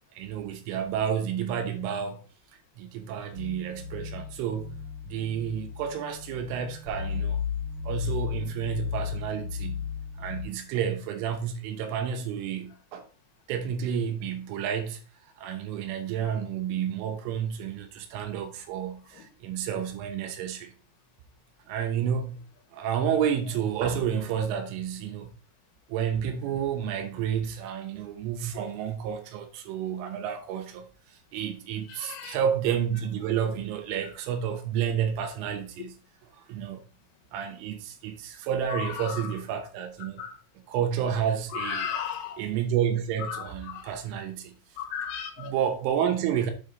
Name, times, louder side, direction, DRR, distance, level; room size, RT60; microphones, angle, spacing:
voice 1, 0.2-2.2 2.8-4.8 5.1-7.4 7.8-9.8 10.2-13.1 13.5-15.0 15.4-20.7 21.7-22.5 22.7-25.3 25.9-30.9 31.3-35.9 36.4-36.8 37.3-40.2 40.7-41.9 42.4-44.5 45.4-46.5, right 8 dB, 80° right, 3.5 m, -30 dB
sound 1, 3.3-10.4, left 7 dB, 40° right, 3.0 m, -34 dB
voice 2, 31.9-32.4 38.8-39.3 40.2-40.4 41.5-42.5 43.2-43.9 44.8-45.5, left 8 dB, 70° left, 3.4 m, -35 dB
7.7 x 4.8 x 3.8 m
omnidirectional pair, 5.7 m